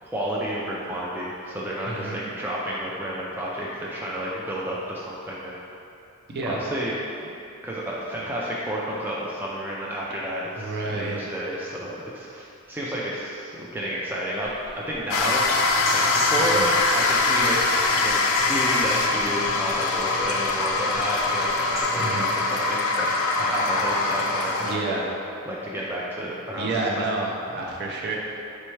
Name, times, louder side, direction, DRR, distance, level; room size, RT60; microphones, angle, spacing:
voice 1, 0.0-5.6 6.5-6.9 7.2-7.3 7.6-15.4 15.9-17.6 17.9-18.2 18.5-25.0 25.5-27.1, right 1 dB, 10° right, -6 dB, 0.3 m, -31 dB
voice 2, 1.8-2.2 6.3-6.7 10.6-11.3 16.5-16.7 21.9-22.3 24.6-25.1 26.5-28.1, right 2 dB, 50° right, -2 dB, 0.6 m, -29 dB
sound 1, 14.4-21.8, equal, 30° right, 1.4 m, -40 dB
sound 2, 15.1-24.8, left 3 dB, 80° left, 0.4 m, -23 dB
4.3 x 3.4 x 3.2 m, 2.7 s
head